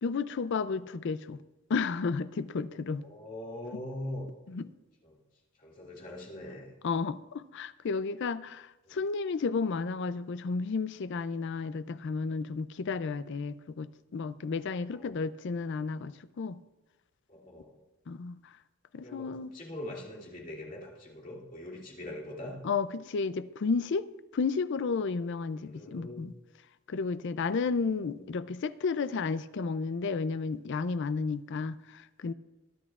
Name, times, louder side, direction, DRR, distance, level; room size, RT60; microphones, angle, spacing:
voice 1, 0.0-1.4 1.7-3.0 3.7-3.8 4.5-4.7 6.8-16.6 18.1-18.4 18.9-19.5 22.6-24.1 24.3-26.3 26.9-32.3, left 4 dB, 55° left, 15 dB, 0.4 m, -32 dB
voice 2, 3.0-4.2 5.0-5.1 5.6-6.7 8.9-9.0 14.9-15.2 17.3-17.7 19.0-22.6 25.6-26.2 27.7-28.3, left 1 dB, 40° left, -3 dB, 2.5 m, -42 dB
21.0 x 10.0 x 2.4 m, 1.1 s
head